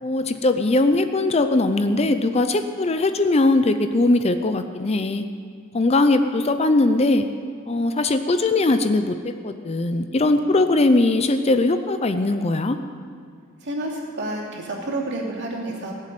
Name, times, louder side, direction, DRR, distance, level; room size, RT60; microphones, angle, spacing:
voice 1, 0.0-5.2 5.7-7.3 7.7-9.2 9.4-12.8, left 2 dB, 30° left, 8 dB, 0.5 m, -20 dB
voice 2, 13.6-15.9, right 1 dB, 50° right, -3 dB, 2.8 m, -29 dB
17.0 x 7.4 x 9.0 m, 2.2 s
head